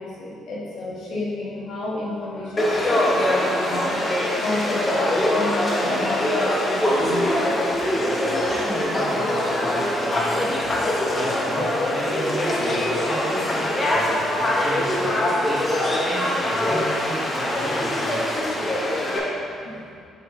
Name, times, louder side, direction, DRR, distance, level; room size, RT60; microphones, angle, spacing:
voice 1, 0.0-4.0 4.4-7.2 18.9-19.0 19.6-19.8, left 2 dB, 65° left, -6 dB, 1.4 m, -31 dB
Conversation / Crowd, 2.6-19.2, left 1 dB, 25° left, 0.8 m, -23 dB
voice 2, 7.9-14.8 15.1-18.6, equal, ahead, -10 dB, 1.5 m, -33 dB
7.8 x 4.6 x 3.1 m, 2.4 s
cardioid pair, 160°, 0 cm